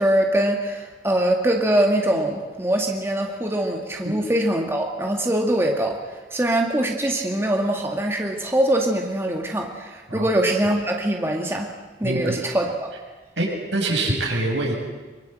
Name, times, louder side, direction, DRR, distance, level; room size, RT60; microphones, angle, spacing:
voice 1, 0.0-6.0 6.3-11.7 12.0-12.9, right 1 dB, 15° right, 1 dB, 2.2 m, -23 dB
voice 2, 12.0-12.4 13.4-14.8, right 2 dB, 85° right, 0 dB, 6.7 m, -24 dB
24.0 x 24.0 x 7.9 m, 1.2 s
head